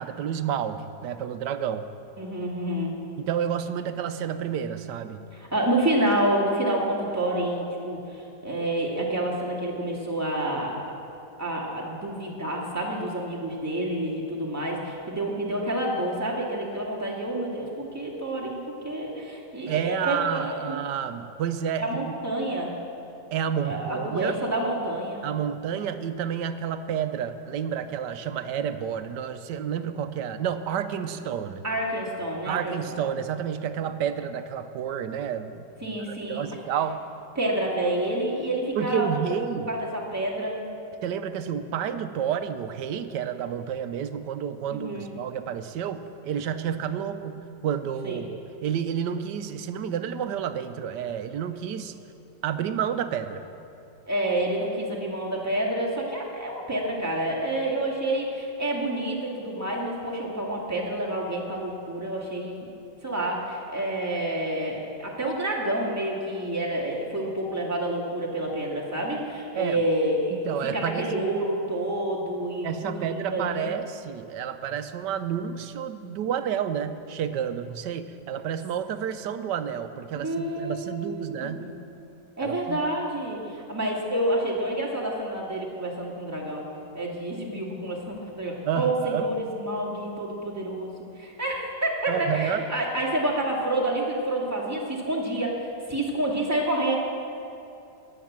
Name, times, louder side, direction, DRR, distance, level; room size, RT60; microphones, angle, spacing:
voice 1, 0.0-1.9 3.2-5.2 19.7-22.2 23.3-24.4 25.2-31.6 32.5-37.0 38.8-39.7 41.0-51.9 52.4-53.4 69.5-69.8 70.3-71.3 72.6-81.7 82.4-82.9 88.6-89.3 92.1-92.6, right 8 dB, 80° right, 10 dB, 1.3 m, -30 dB
voice 2, 2.2-3.0 5.3-10.8 11.4-20.8 21.8-22.8 23.6-25.2 31.6-33.0 35.8-36.5 37.4-39.3 39.7-40.6 44.7-45.1 48.0-48.2 54.1-62.7 63.0-73.7 80.2-81.7 82.4-86.7 86.9-96.9, right 1 dB, 10° right, -3 dB, 2.1 m, -28 dB
19.5 x 7.5 x 7.4 m, 2.7 s
omnidirectional pair, 1.9 m